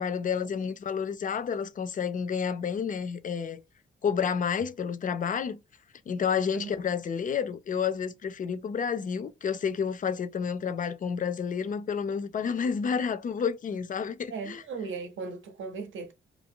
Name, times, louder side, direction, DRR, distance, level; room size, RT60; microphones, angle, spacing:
voice 1, 0.0-3.6 4.0-5.6 6.1-14.6, left 6 dB, 40° left, 0.4 m, -30 dB
voice 2, 6.3-6.7 14.3-16.1, right 4 dB, 70° right, 0.6 m, -37 dB
2.7 x 2.3 x 3.6 m
wide cardioid pair, 135°, 21 cm